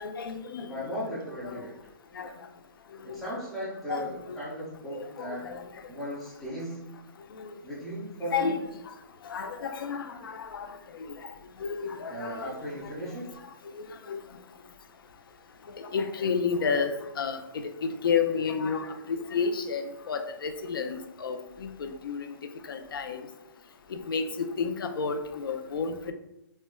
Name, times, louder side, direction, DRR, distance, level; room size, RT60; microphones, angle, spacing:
voice 1, 0.0-0.9 1.4-1.6 2.1-2.3 2.9-3.2 3.9-4.4 4.9-5.7 7.3-7.6 8.3-8.9 9.2-10.8 11.2-11.3 11.6-12.9 13.7-14.2 15.8-17.4 17.8-22.4 22.7-23.3 23.9-26.1, left 5 dB, 70° left, 7 dB, 0.4 m, -31 dB
voice 2, 0.7-1.7 3.0-4.1 4.4-5.5 5.8-7.0 7.6-8.5 12.1-13.3, equal, ahead, -9 dB, 0.3 m, -36 dB
4.2 x 2.1 x 2.2 m, 0.86 s
hypercardioid pair, 175°, 12 cm